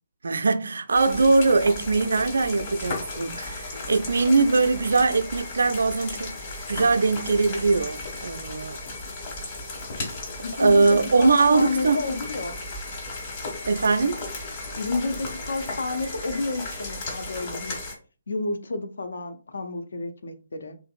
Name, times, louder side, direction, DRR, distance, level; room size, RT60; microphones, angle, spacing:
voice 1, 0.2-6.3 6.7-8.8 10.6-12.1 13.6-14.2, right 3 dB, 65° right, 0.3 m, -21 dB
sound 1, 0.9-18.0, left 2 dB, 40° left, 1.3 m, -35 dB
voice 2, 10.4-12.6 14.8-17.8 18.3-20.8, left 3 dB, 70° left, 0.5 m, -30 dB
2.9 x 2.5 x 2.4 m
figure-of-eight pair, 135°, 0 cm